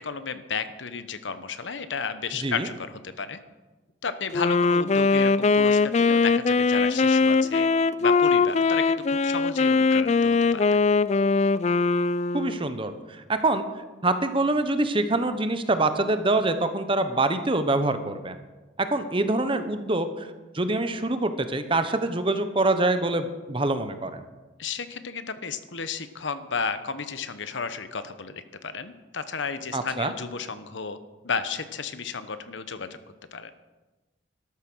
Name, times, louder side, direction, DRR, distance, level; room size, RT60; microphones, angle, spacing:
voice 1, 0.0-3.4 4.0-7.7 8.0-10.7 24.6-31.0 31.2-32.9 33.3-33.5, left 5 dB, 70° left, 11 dB, 1.0 m, -33 dB
Wind instrument woodwind instrument, 4.3-12.7, left 4 dB, 35° left, 0.3 m, -21 dB
voice 2, 12.3-13.6 14.0-18.4 18.9-20.3 20.5-24.2 29.7-30.1, right 2 dB, 25° right, 9 dB, 0.9 m, -25 dB
13.5 x 12.5 x 6.2 m, 1.2 s
head